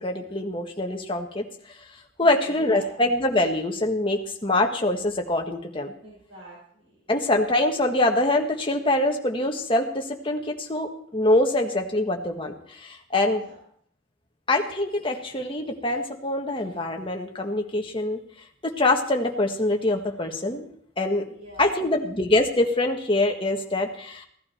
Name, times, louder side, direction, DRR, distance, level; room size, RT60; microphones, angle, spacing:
voice 1, 0.0-1.4 2.2-5.9 7.1-13.4 14.5-18.2 18.6-20.7 21.0-21.2 21.6-24.3, left 2 dB, 25° left, 2 dB, 1.5 m, -24 dB
voice 2, 2.2-2.9 6.0-7.1 13.3-13.6 21.2-21.7, equal, 75° right, -5 dB, 6.2 m, -46 dB
17.0 x 12.0 x 4.4 m, 0.62 s
head